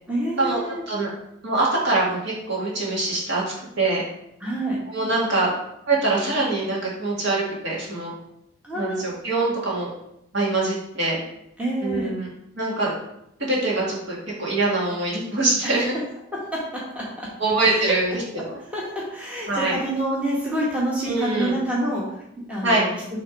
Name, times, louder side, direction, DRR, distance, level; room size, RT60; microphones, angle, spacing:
voice 1, 0.1-0.9 4.4-4.8 8.6-9.1 11.6-12.1 15.6-15.8 16.3-17.3 17.6-17.9 18.5-23.0, right 1 dB, 5° right, -5 dB, 1.0 m, -28 dB
voice 2, 1.4-3.4 3.8-4.0 4.9-5.5 5.9-8.1 8.8-9.9 10.3-11.2 11.8-12.3 12.5-12.9 13.4-15.9 17.4-18.2 19.5-19.7 21.0-21.5 22.6-22.9, right 2 dB, 55° right, -5 dB, 2.1 m, -23 dB
6.1 x 3.4 x 5.2 m, 0.80 s
head